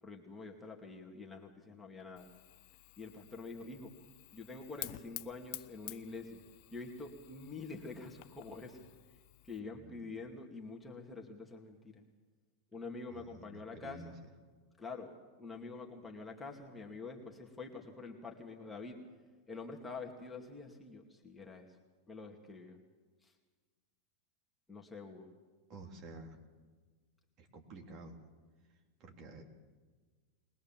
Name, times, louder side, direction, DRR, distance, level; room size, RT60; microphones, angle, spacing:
voice 1, 0.0-2.3 3.0-3.9 4.3-6.4 6.7-9.2 9.4-12.0 12.7-14.2 14.8-19.0 19.5-21.7 22.1-22.8 23.2-23.3 24.7-25.3, left 3 dB, 10° left, -1 dB, 2.5 m, -47 dB
Fire, 2.2-9.6, left 18 dB, 55° left, 0.8 m, -51 dB
voice 2, 13.1-14.1 25.7-26.4 27.4-28.2 29.0-29.4, right 3 dB, 45° right, 2 dB, 3.8 m, -51 dB
22.0 x 19.5 x 7.5 m, 1.4 s
hypercardioid pair, 115°, 0 cm